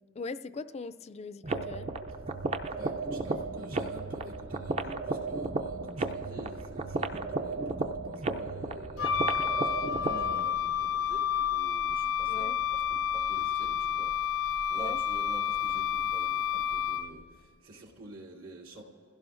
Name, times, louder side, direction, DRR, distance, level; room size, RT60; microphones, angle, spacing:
voice 1, 0.2-1.9 12.3-12.6 14.8-15.0, left 3 dB, 30° left, 11 dB, 0.3 m, -40 dB
sound 1, 1.4-10.5, right 3 dB, 30° right, 0.5 m, -34 dB
voice 2, 2.7-18.8, right 1 dB, 85° right, -3 dB, 2.8 m, -47 dB
Wind instrument woodwind instrument, 9.0-17.3, left 8 dB, 75° left, 0.7 m, -30 dB
28.5 x 16.0 x 2.5 m, 2.5 s
head